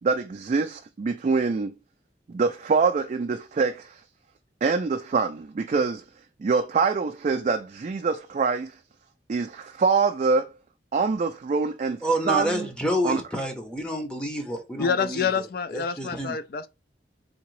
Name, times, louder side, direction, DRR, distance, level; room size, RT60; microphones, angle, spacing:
voice 1, 0.0-1.8 2.3-4.0 4.6-6.0 6.4-8.7 9.3-10.5 10.9-12.7 13.0-13.2, right 4 dB, 40° right, 0.3 m, -25 dB
voice 2, 12.0-15.3 15.7-16.4, equal, 5° left, 0.6 m, -28 dB
voice 3, 14.8-16.7, left 6 dB, 55° left, 0.4 m, -27 dB
3.7 x 2.8 x 3.1 m
head